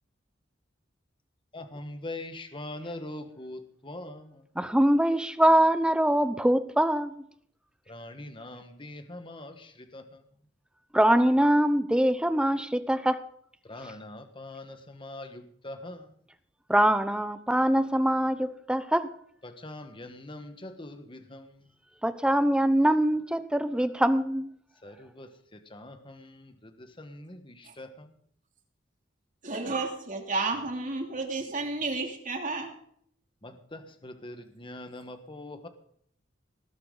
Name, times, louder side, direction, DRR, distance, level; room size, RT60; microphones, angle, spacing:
voice 1, 1.5-4.5 7.9-10.3 13.6-16.2 19.4-21.8 24.8-28.2 33.4-35.7, left 1 dB, 25° left, 1.5 m, -43 dB
voice 2, 4.6-7.1 10.9-13.3 16.7-19.1 22.0-24.5, right 1 dB, 5° right, 0.8 m, -23 dB
voice 3, 29.4-32.7, right 3 dB, 45° right, 2.9 m, -31 dB
19.5 x 11.5 x 4.0 m
head